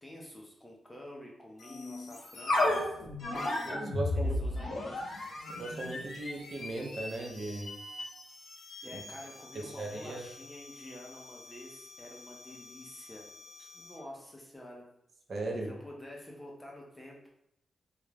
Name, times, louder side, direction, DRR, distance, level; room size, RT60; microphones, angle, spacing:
voice 1, 0.0-3.0 4.1-5.0 8.8-13.3 13.7-14.9 15.7-17.2, left 1 dB, 10° left, -2 dB, 0.5 m, -48 dB
sound 1, 1.6-14.1, left 2 dB, 65° left, 0.6 m, -37 dB
voice 2, 3.6-4.4 4.7-4.8 5.6-7.7 8.9-9.0 9.8-10.2 15.3-15.7, right 2 dB, 50° right, 1 dB, 0.5 m, -37 dB
2.3 x 2.0 x 3.1 m, 0.78 s
wide cardioid pair, 110°, 0 cm